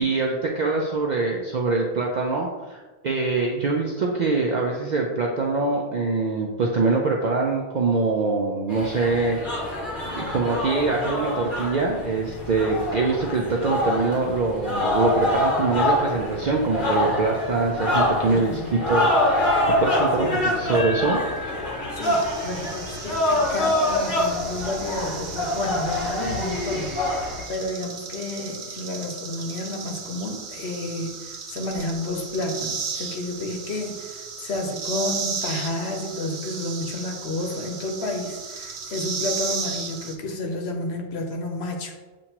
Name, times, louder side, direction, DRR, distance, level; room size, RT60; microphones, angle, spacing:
voice 1, 0.0-9.8 10.1-21.2, right 3 dB, 55° right, -1 dB, 0.5 m, -24 dB
sound 1, 8.7-27.4, left 1 dB, 50° left, 1.2 m, -25 dB
voice 2, 18.2-18.7 20.2-20.8 21.9-42.0, left 2 dB, 75° left, 2 dB, 1.0 m, -31 dB
sound 2, 20.3-24.1, left 2 dB, 30° left, 0.4 m, -37 dB
sound 3, 22.0-40.1, right 5 dB, 80° right, 0.9 m, -35 dB
7.2 x 2.6 x 2.9 m, 1.2 s
omnidirectional pair, 1.1 m